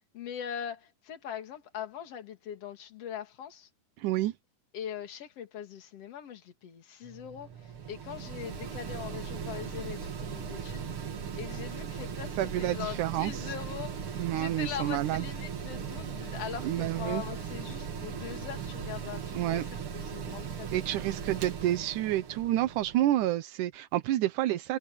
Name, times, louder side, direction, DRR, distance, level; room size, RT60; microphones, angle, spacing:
voice 1, 0.1-3.7 4.7-11.0 11.4-21.2, left 9 dB, 50° left, 2.9 m, -41 dB
voice 2, 4.0-4.3 12.4-13.5 14.2-15.2 16.6-17.2 19.3-19.6 20.7-24.8, right 14 dB, 75° right, 2.3 m, -29 dB
Mechanical fan, 7.0-23.3, right 7 dB, 45° right, 2.3 m, -38 dB
sound 1, 8.8-19.5, left 2 dB, 75° left, 7.6 m, -58 dB
omnidirectional pair, 3.9 m